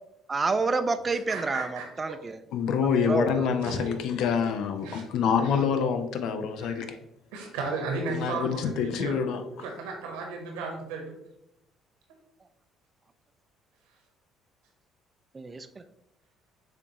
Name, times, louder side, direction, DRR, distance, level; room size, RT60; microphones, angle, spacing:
voice 1, 0.3-2.4 2.8-3.5 15.3-15.8, right 3 dB, 30° right, 10 dB, 0.3 m, -29 dB
voice 2, 1.3-1.8 3.6-3.9 4.8-5.0 6.5-6.9 7.3-9.2 9.6-11.1, right 3 dB, 80° right, 2 dB, 1.0 m, -34 dB
voice 3, 2.5-7.0 8.1-9.4, left 6 dB, 65° left, 8 dB, 0.5 m, -26 dB
6.8 x 2.5 x 2.9 m, 0.83 s
hypercardioid pair, 55°, 0 cm